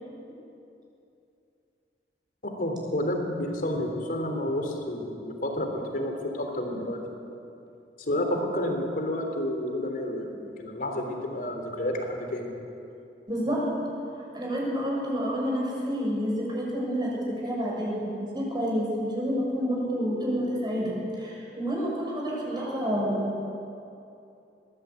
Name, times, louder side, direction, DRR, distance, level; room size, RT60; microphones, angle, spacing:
voice 1, 2.4-7.2 8.1-12.5, left 1 dB, 55° left, 3 dB, 3.4 m, -30 dB
voice 2, 13.3-13.7 14.1-23.4, equal, 25° right, -3 dB, 6.6 m, -29 dB
22.0 x 16.0 x 8.4 m, 2.7 s
head